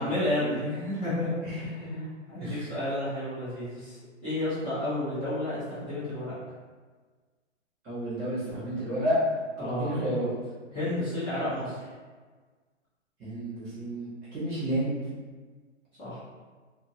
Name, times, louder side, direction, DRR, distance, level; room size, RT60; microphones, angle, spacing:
voice 1, 0.0-1.7 2.0-6.3 9.6-10.0 10.7-11.9 16.0-16.2, left 1 dB, 15° left, -14 dB, 0.8 m, -31 dB
voice 2, 1.4-2.0 2.4-2.7 7.8-9.2 9.6-10.3 13.2-15.0, right 1 dB, 20° right, -10 dB, 0.9 m, -31 dB
2.5 x 2.5 x 2.8 m, 1.4 s
hypercardioid pair, 150°, 37 cm